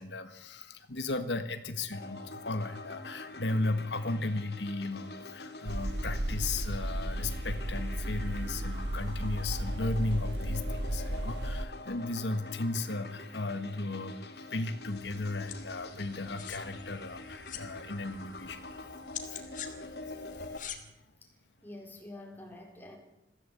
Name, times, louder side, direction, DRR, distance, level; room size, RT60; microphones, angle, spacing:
voice 1, 0.0-18.8 19.3-19.4, left 2 dB, 75° left, 9 dB, 1.6 m, -35 dB
sound 1, 1.9-20.6, left 2 dB, 60° left, 2.4 m, -46 dB
sound 2, 5.7-11.6, right 1 dB, 70° right, 1.4 m, -34 dB
sound 3, 14.8-20.8, left 8 dB, 45° left, 2.6 m, -46 dB
voice 2, 21.6-23.0, left 1 dB, 10° left, 1 dB, 4.3 m, -47 dB
22.5 x 15.5 x 8.4 m, 0.90 s
head